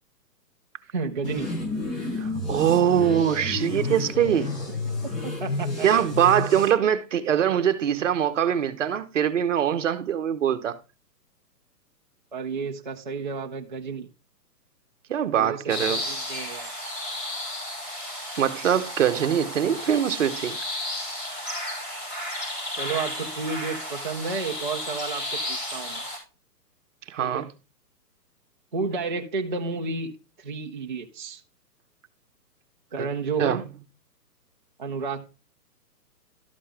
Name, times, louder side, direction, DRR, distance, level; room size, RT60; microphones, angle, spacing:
voice 1, 0.9-1.5 4.8-5.9 12.3-14.1 15.4-15.7 16.1-16.7 22.8-26.0 27.2-27.5 28.7-31.4 32.9-33.7 34.8-35.3, right 4 dB, 30° right, 0.5 m, -31 dB
sound 1, 1.2-6.7, left 2 dB, 50° left, 4.7 m, -30 dB
voice 2, 2.2-4.7 5.8-10.8 15.1-16.0 18.4-20.6 27.1-27.4 33.0-33.1 33.4-33.6, right 9 dB, 50° right, 1.0 m, -23 dB
sound 2, 15.7-26.2, left 1 dB, 25° left, 4.0 m, -33 dB
12.5 x 5.4 x 3.3 m
hypercardioid pair, 170°, 49 cm